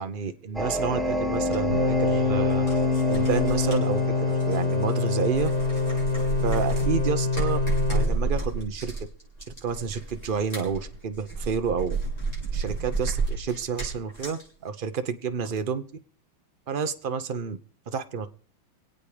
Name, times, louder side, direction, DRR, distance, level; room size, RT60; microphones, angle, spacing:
voice 1, 0.0-2.6 3.1-5.5 6.4-7.6 7.9-8.9 9.6-12.0 12.5-15.8 16.7-17.6 17.9-18.3, right 6 dB, 65° right, 9 dB, 0.5 m, -29 dB
sound 1, 0.5-7.1, left 2 dB, ahead, 1.0 m, -29 dB
sound 2, 1.5-1.6 2.5-4.9 5.2-14.4, right 3 dB, 20° left, 6.3 m, -31 dB
sound 3, 1.7-8.0, left 4 dB, 45° left, 8.2 m, -26 dB
24.0 x 8.5 x 4.9 m, 0.44 s
omnidirectional pair, 2.2 m